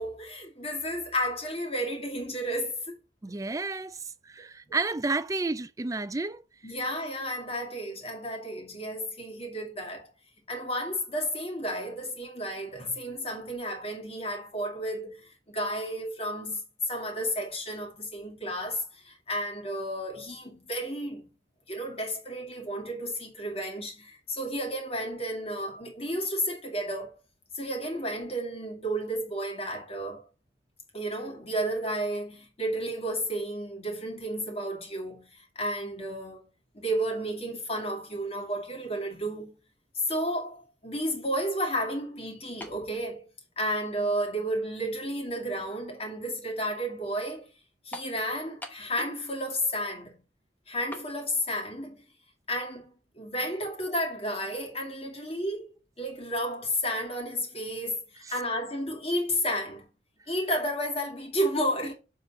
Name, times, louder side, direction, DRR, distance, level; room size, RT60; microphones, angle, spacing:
voice 1, 0.0-2.9 4.7-4.8 6.6-10.1 10.5-21.3 21.7-27.2 27.5-30.3 30.9-36.5 36.7-39.5 39.9-43.3 43.6-47.5 47.8-50.2 50.7-52.0 52.5-59.9 60.3-61.9, equal, 30° left, 2.3 m, -32 dB
voice 2, 3.2-6.4 6.7-6.8 58.2-58.3, right 3 dB, 15° right, 0.3 m, -31 dB
sound 1, 42.6-42.9 43.8-43.9 47.9-48.2 48.6-49.3 49.5-49.6 50.9-51.1, left 1 dB, 10° left, 0.9 m, -41 dB
7.3 x 4.0 x 6.2 m
head